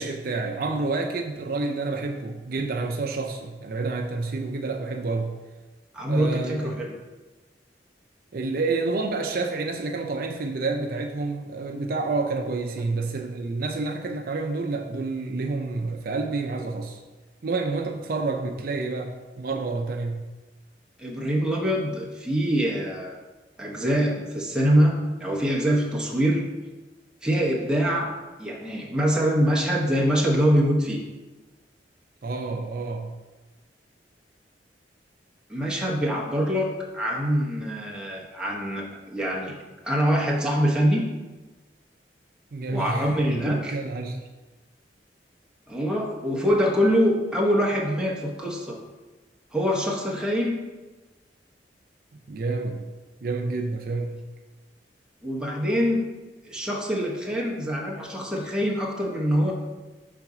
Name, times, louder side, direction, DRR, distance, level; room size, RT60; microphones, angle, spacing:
voice 1, 0.0-5.4 6.1-6.6 8.3-17.0 17.4-20.2 32.2-33.1 42.5-44.2 52.3-52.9 53.2-54.2, right 3 dB, 55° right, 3 dB, 0.5 m, -29 dB
voice 2, 5.9-7.0 21.0-23.1 23.6-26.4 27.2-28.1 28.4-31.0 35.5-39.5 39.8-41.1 42.7-43.7 45.7-48.8 49.5-50.6 55.2-56.0 56.4-59.5, equal, 5° right, -3 dB, 0.9 m, -24 dB
5.9 x 3.9 x 4.8 m, 1.2 s
head